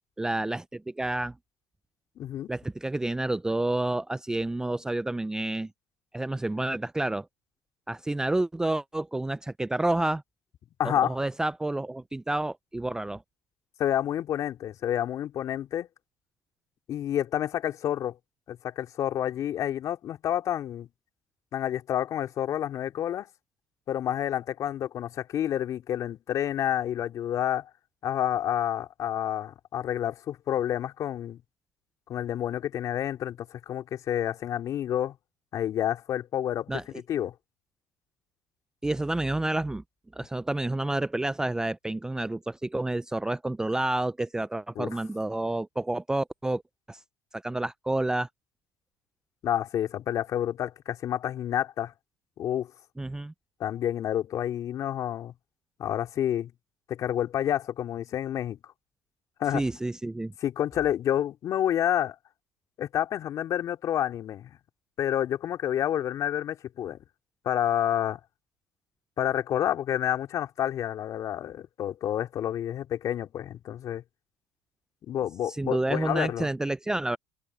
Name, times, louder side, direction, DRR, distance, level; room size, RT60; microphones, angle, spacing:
voice 1, 0.0-1.3 2.5-5.7 6.1-7.3 7.9-10.2 10.8-13.2 36.7-36.8 38.8-39.8 40.1-46.6 46.9-47.0 47.3-48.3 53.0-53.3 59.5-60.3 75.5-77.2, right 2 dB, 10° right, 0.5 m, -29 dB
voice 2, 2.2-2.5 10.8-11.1 13.8-15.9 16.9-18.2 18.5-20.9 21.5-23.3 23.9-27.7 28.0-31.4 32.1-35.1 35.5-37.3 44.7-44.9 49.4-51.9 52.4-52.7 53.6-55.3 55.8-56.5 56.9-58.6 59.4-59.6 60.4-62.1 62.8-64.6 65.0-67.0 67.4-68.2 69.2-74.0 75.1-76.5, left 11 dB, 50° left, 3.1 m, -29 dB
open air
supercardioid pair, 85°, 7 cm